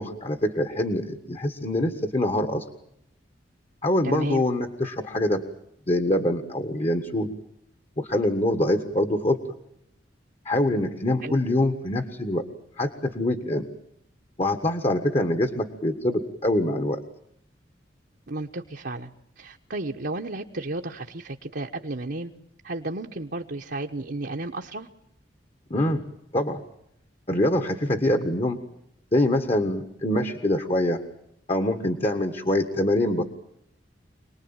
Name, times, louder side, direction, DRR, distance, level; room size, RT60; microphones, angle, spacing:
voice 1, 0.0-2.6 3.8-5.4 5.9-7.3 8.0-9.4 10.4-12.4 12.8-13.7 14.4-17.0 25.7-26.0 26.3-26.6 27.3-28.6 29.1-31.0 31.5-33.2, left 1 dB, 35° left, 8 dB, 1.6 m, -24 dB
voice 2, 4.0-4.5 11.2-11.3 18.3-22.3 22.6-24.9, right 2 dB, 60° right, 1 dB, 1.2 m, -33 dB
26.5 x 20.0 x 9.0 m, 0.76 s
head